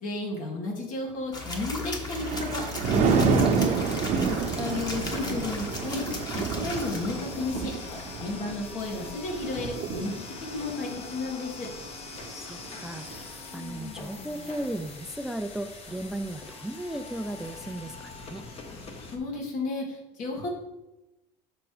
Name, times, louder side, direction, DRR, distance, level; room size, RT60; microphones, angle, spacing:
voice 1, 0.0-3.7 4.6-6.0 6.3-7.7 8.2-10.1 10.4-11.7 19.1-20.5, left 3 dB, 65° left, 0 dB, 2.0 m, -32 dB
sound 1, 1.3-8.3, left 2 dB, 25° left, 1.3 m, -37 dB
Thunder, 1.7-13.2 13.7-14.0, right 6 dB, 60° right, 0.8 m, -29 dB
sound 2, 2.8-19.2, left 4 dB, 45° left, 1.1 m, -42 dB
voice 2, 12.3-18.5, right 1 dB, 5° right, 8 dB, 0.4 m, -36 dB
6.0 x 5.2 x 4.8 m, 1.0 s
cardioid pair, 110°, 15 cm